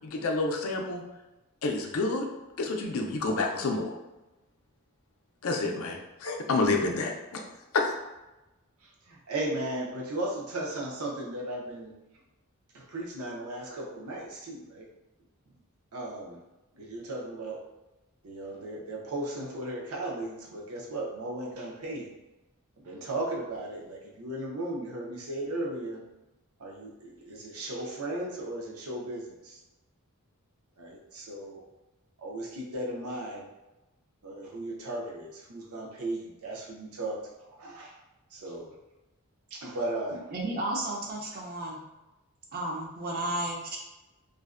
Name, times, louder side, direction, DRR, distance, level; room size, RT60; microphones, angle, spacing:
voice 1, 0.0-1.0 1.6-2.3 2.6-3.9 5.4-7.4 7.7-7.9, left 3 dB, 70° left, 2 dB, 0.4 m, -29 dB
voice 2, 8.8-11.9 12.7-14.9 15.9-16.4 16.7-17.6 18.2-22.1 22.8-26.0 26.6-29.6 30.8-31.6 32.2-33.5 34.2-38.0 38.3-38.7 39.5-40.2, right 1 dB, 85° right, -2 dB, 0.6 m, -36 dB
voice 3, 40.1-41.8 42.5-43.8, right 1 dB, 45° right, -1 dB, 0.4 m, -33 dB
2.5 x 2.1 x 2.4 m, 1.0 s
head